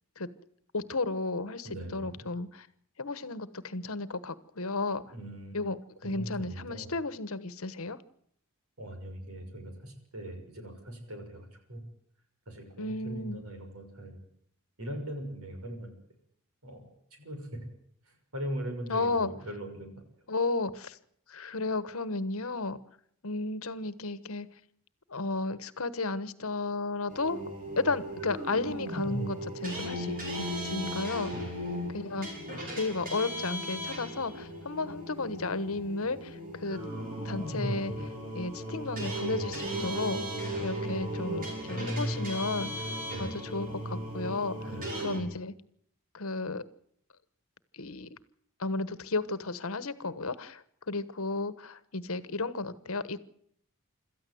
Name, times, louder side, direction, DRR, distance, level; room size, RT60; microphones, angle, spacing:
voice 1, 0.7-2.7 3.0-5.0 5.5-5.8 6.0-8.0 12.8-13.4 18.9-19.3 20.3-21.0 21.3-22.8 23.2-24.5 25.1-27.4 27.8-31.3 31.9-32.3 32.7-36.8 37.2-38.1 38.3-40.2 40.6-42.9 43.2-44.7 45.0-45.5 46.1-46.6 47.7-48.1 48.6-53.2, left 3 dB, 75° left, 15 dB, 1.3 m, -33 dB
voice 2, 1.6-2.1 5.1-5.6 6.0-6.9 8.8-11.8 12.5-14.2 14.8-15.9 16.6-16.8 17.2-17.7 18.3-19.9 31.3-31.5 41.7-42.4 43.1-43.4 44.6-44.8, right 1 dB, 85° right, 5 dB, 6.5 m, -39 dB
sound 1, 27.1-45.2, equal, 40° right, 6.7 m, -36 dB
26.5 x 14.0 x 7.9 m, 0.68 s
head